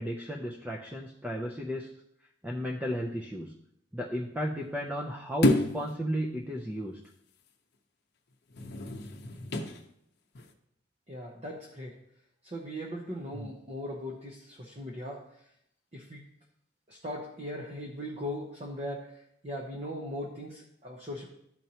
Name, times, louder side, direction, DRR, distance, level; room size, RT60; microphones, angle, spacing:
voice 1, 0.0-1.9 2.4-3.5 3.9-7.0 13.3-13.5, equal, 10° right, -2 dB, 0.4 m, -34 dB
sound 1, 5.4-5.9 8.5-9.8 10.4-10.5, left 1 dB, 55° left, 0.7 m, -28 dB
voice 2, 11.1-11.9 12.4-15.2 15.9-16.2 16.9-21.3, equal, 35° right, -1 dB, 0.8 m, -39 dB
12.5 x 4.5 x 2.8 m, 0.76 s
head